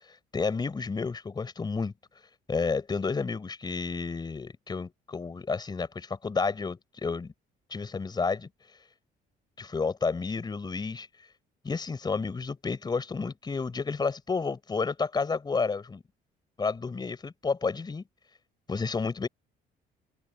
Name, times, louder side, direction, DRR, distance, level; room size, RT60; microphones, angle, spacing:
voice 1, 0.3-1.9 2.5-7.3 7.7-8.5 9.6-11.1 11.6-16.0 16.6-18.0 18.7-19.3, left 4 dB, 25° left, 4.2 m, -31 dB
open air
cardioid pair, 110°, 17 cm